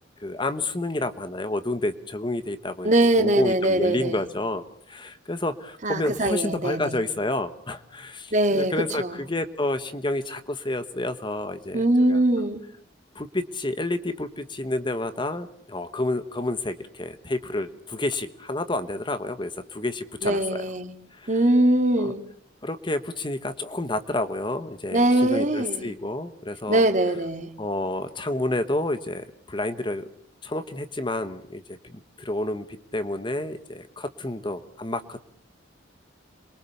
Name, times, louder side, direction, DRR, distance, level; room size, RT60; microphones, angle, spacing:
voice 1, 0.2-2.9 3.2-12.2 13.1-20.7 21.1-21.3 22.0-22.1 22.6-26.8 27.6-30.1 30.4-35.3, left 2 dB, 25° left, 10 dB, 1.1 m, -30 dB
voice 2, 2.8-4.2 5.8-7.0 8.3-9.2 11.7-12.6 20.2-20.9 21.3-22.2 24.9-25.9 26.7-27.5, right 1 dB, 40° right, 7 dB, 2.3 m, -22 dB
27.5 x 22.5 x 7.0 m, 0.63 s
head